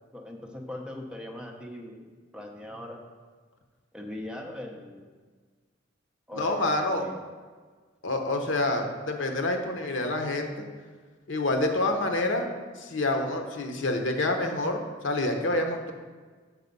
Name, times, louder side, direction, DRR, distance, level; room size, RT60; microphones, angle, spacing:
voice 1, 0.1-2.1 2.3-3.0 3.9-5.1 6.3-7.2, left 1 dB, 5° right, 1 dB, 0.7 m, -40 dB
voice 2, 6.3-7.0 8.0-10.5 11.3-12.5 12.8-15.9, left 2 dB, 75° left, 4 dB, 1.0 m, -27 dB
6.5 x 5.5 x 5.3 m, 1.5 s
head